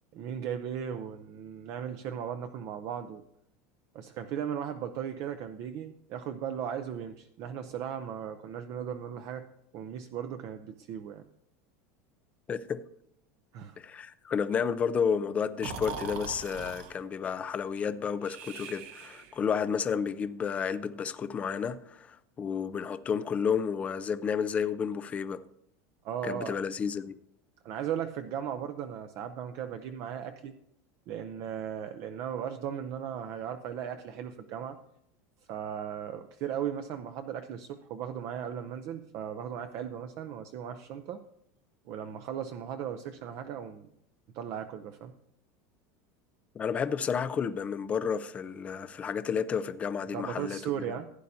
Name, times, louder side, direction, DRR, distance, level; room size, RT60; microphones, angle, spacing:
voice 1, 0.1-3.2 3.9-9.4 9.7-11.2 13.5-13.8 26.0-26.6 27.6-30.5 31.1-34.8 35.5-41.2 41.9-43.9 44.3-45.1 50.1-51.1, right 9 dB, 40° right, 0.6 m, -37 dB
voice 2, 12.5-12.8 13.8-25.4 26.2-27.2 46.5-50.7, left 6 dB, 15° left, 0.4 m, -31 dB
Breathing, 15.6-16.9 18.2-19.5, right 5 dB, 55° right, 1.1 m, -41 dB
16.0 x 9.8 x 2.7 m
supercardioid pair, 175°, 8 cm